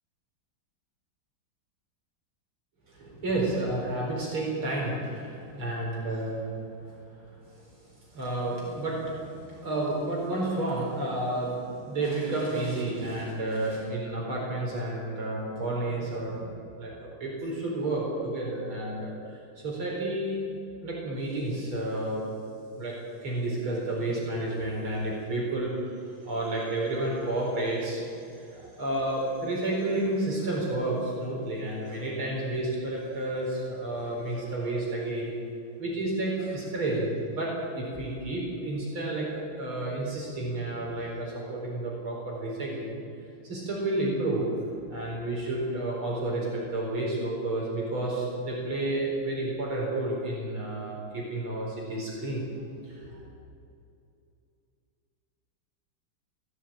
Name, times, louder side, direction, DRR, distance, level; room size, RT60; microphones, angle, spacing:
voice 1, 2.9-6.5 6.8-20.4 20.8-22.2 22.7-23.0 23.2-35.3 35.8-43.0 43.4-44.6 44.9-52.5 52.8-53.2, right 2 dB, 70° right, -3 dB, 5.2 m, -31 dB
19.5 x 15.0 x 8.9 m, 2.6 s
omnidirectional pair, 2.4 m